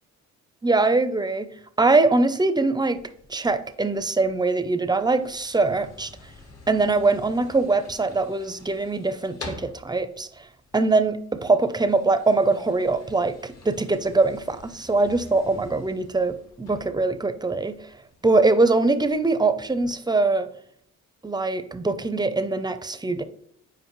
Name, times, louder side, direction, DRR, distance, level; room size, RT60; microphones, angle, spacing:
voice 1, 0.6-1.5 1.8-3.0 3.3-6.1 6.7-10.3 10.7-17.7 18.2-20.5 21.2-23.2, right 3 dB, 15° right, 11 dB, 0.5 m, -22 dB
sound 1, 2.9-19.9, left 2 dB, 60° left, 1.6 m, -48 dB
7.9 x 4.8 x 3.1 m, 0.67 s
cardioid pair, 90°, 30 cm